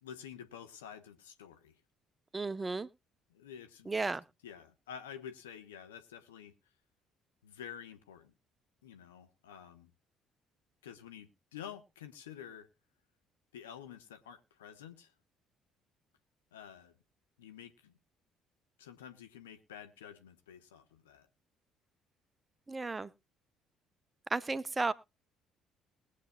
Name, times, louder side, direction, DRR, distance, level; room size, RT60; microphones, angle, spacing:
voice 1, 0.0-1.7 3.3-3.9 4.4-6.5 7.4-8.3 8.8-9.9 10.8-12.7 13.5-15.1 16.5-16.9 17.4-18.0 18.8-21.3, left 8 dB, 75° left, 1.0 m, -49 dB
voice 2, 2.3-2.9 3.9-4.2 22.7-23.1 24.3-24.9, right 3 dB, 20° right, 0.7 m, -33 dB
21.0 x 8.4 x 2.2 m
figure-of-eight pair, 50°, 0 cm